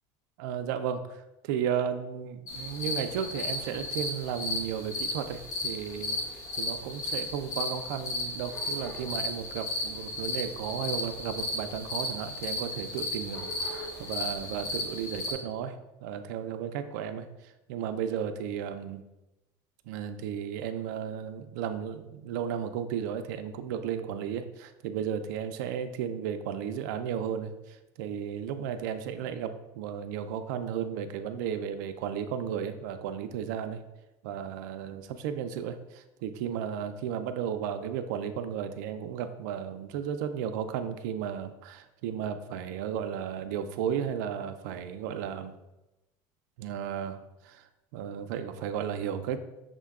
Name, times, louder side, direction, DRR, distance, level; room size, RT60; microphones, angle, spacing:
voice 1, 0.4-6.2 6.6-17.3 17.7-19.0 19.9-33.8 34.2-45.6 46.6-47.2 47.4-47.6 47.9-49.4, right 8 dB, 85° right, 8 dB, 0.4 m, -34 dB
sound 1, 2.5-15.3, left 2 dB, 35° left, 1.1 m, -35 dB
6.4 x 2.2 x 3.5 m, 0.96 s
supercardioid pair, 135°, 10 cm